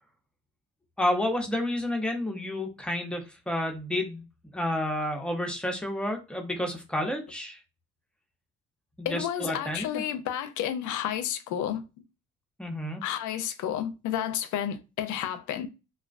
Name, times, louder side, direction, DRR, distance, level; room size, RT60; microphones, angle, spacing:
voice 1, 1.0-4.2 4.5-7.6 9.0-10.0 12.6-13.0, left 1 dB, 5° left, 0.5 m, -30 dB
voice 2, 9.1-11.8 13.0-15.7, left 10 dB, 80° left, 0.5 m, -31 dB
2.3 x 2.3 x 2.4 m
cardioid pair, 90°, 30 cm